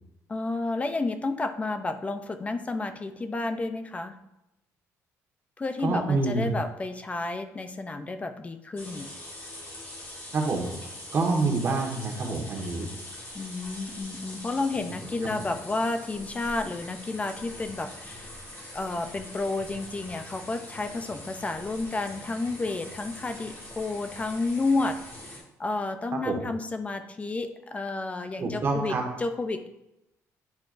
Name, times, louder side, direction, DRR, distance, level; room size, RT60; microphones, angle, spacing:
voice 1, 0.3-4.2 5.6-9.1 13.3-18.3 18.7-25.0 25.2-29.7, left 3 dB, 20° left, 9 dB, 0.5 m, -31 dB
voice 2, 5.8-6.5 10.3-10.7 11.1-12.9 26.1-26.4 28.4-29.0, right 3 dB, 40° right, 1 dB, 1.5 m, -27 dB
sound 1, 8.8-25.4, left 1 dB, 40° left, 2.3 m, -43 dB
9.5 x 4.5 x 2.5 m, 0.89 s
cardioid pair, 115°, 6 cm